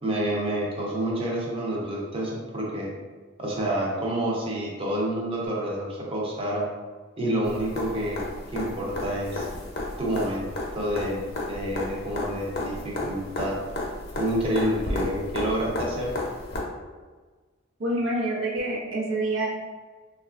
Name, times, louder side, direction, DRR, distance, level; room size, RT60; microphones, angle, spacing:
voice 1, 0.0-2.9 3.4-6.7 7.2-8.2 8.5-9.5 10.0-13.6 14.2-16.1, right 1 dB, 30° right, -3 dB, 0.5 m, -28 dB
sound 1, 7.4-16.6 18.6-18.7, left 1 dB, 55° left, 0.6 m, -33 dB
voice 2, 17.8-19.5, right 1 dB, 85° right, -3 dB, 0.7 m, -27 dB
3.1 x 2.3 x 2.4 m, 1.4 s
head